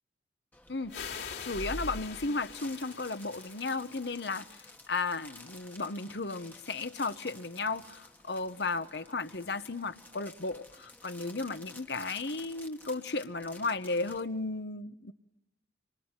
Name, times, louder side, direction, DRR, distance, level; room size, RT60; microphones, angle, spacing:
sound 1, 0.5-14.2, left 1 dB, 10° left, 1.3 m, -50 dB
voice 1, 0.7-1.2 1.4-15.1, left 3 dB, 65° left, 1.1 m, -35 dB
sound 2, 0.9-4.6, left 6 dB, 90° left, 4.5 m, -44 dB
26.5 x 25.0 x 8.9 m
head